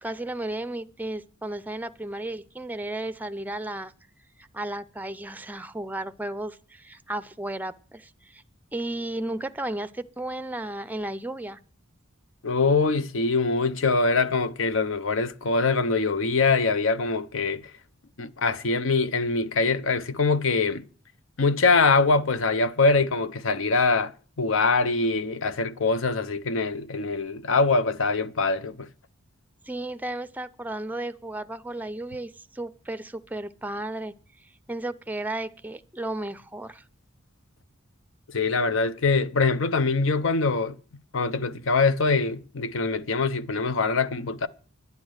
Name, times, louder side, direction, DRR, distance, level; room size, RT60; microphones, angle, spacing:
voice 1, 0.0-3.9 4.4-8.4 8.7-11.6 29.7-34.1 34.7-36.8, right 1 dB, 10° right, 0.5 m, -34 dB
voice 2, 12.4-17.6 18.2-20.8 21.4-24.1 24.4-28.9 38.3-40.8 41.1-44.5, left 4 dB, 70° left, 0.7 m, -23 dB
10.5 x 9.4 x 6.4 m
head